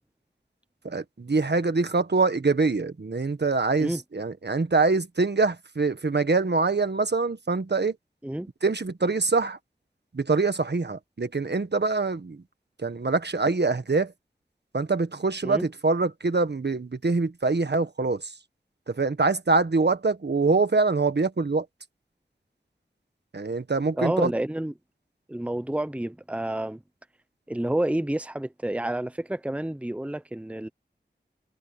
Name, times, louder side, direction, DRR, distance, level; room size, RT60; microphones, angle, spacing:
voice 1, 0.8-7.9 8.6-9.6 10.1-12.4 12.8-14.1 14.7-18.3 18.9-21.7 23.3-24.3, right 3 dB, 65° right, 1.4 m, -24 dB
voice 2, 24.0-24.7 25.3-26.8 27.5-30.7, right 1 dB, 5° right, 0.8 m, -29 dB
wide cardioid pair, 55°, 18 cm